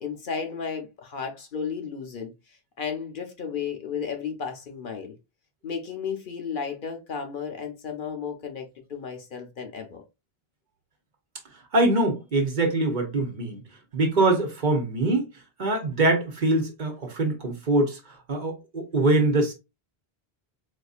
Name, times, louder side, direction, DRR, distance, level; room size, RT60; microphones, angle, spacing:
voice 1, 0.0-5.1 5.6-10.0, left 6 dB, 60° left, 0.8 m, -34 dB
voice 2, 11.7-13.6 13.9-15.3 15.6-18.0 18.3-19.5, right 2 dB, 50° right, 0.9 m, -23 dB
4.2 x 2.6 x 2.4 m
omnidirectional pair, 1.1 m